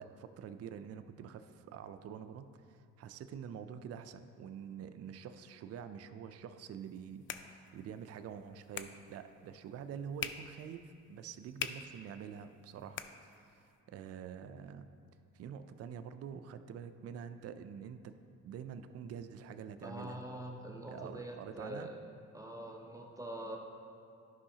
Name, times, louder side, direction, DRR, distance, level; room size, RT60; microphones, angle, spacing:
voice 1, 0.0-13.0 13.4-14.9 15.3-18.0 18.4-20.2 20.9-21.9, right 7 dB, 55° right, 10 dB, 0.4 m, -46 dB
sound 1, 6.7-13.8, left 8 dB, 45° left, 0.4 m, -47 dB
voice 2, 19.8-22.0 22.3-23.6, right 1 dB, 10° right, 1 dB, 0.7 m, -44 dB
11.5 x 5.5 x 2.8 m, 2.6 s
cardioid pair, 90°, 30 cm